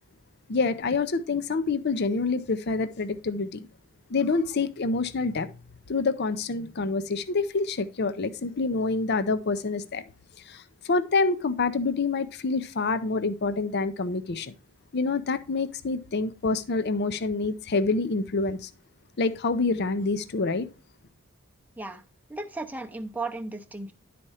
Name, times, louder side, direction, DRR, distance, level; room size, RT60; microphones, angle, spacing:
voice 1, 0.5-3.7 4.1-5.5 5.9-10.0 10.4-14.5 14.9-18.7 19.2-20.7, left 3 dB, 50° left, 0.5 m, -27 dB
voice 2, 22.3-23.9, right 2 dB, 10° right, 0.6 m, -35 dB
11.0 x 4.2 x 4.8 m
head